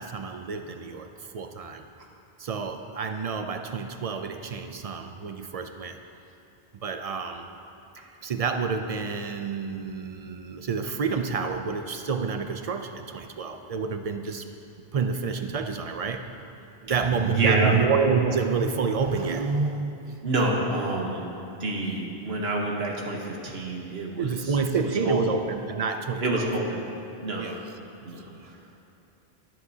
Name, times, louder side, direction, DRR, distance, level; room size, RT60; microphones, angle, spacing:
voice 1, 0.0-1.8 2.4-6.0 6.7-7.5 8.2-14.5 14.9-16.3 16.8-20.3 24.2-26.5 27.4-27.6 28.1-28.5, right 5 dB, 50° right, 7 dB, 0.4 m, -28 dB
voice 2, 17.3-17.7 20.2-21.3 21.6-25.4 26.2-26.9 27.2-27.5 28.0-28.5, right 2 dB, 80° right, -1 dB, 1.4 m, -28 dB
17.0 x 7.4 x 2.8 m, 2.7 s
omnidirectional pair, 1.0 m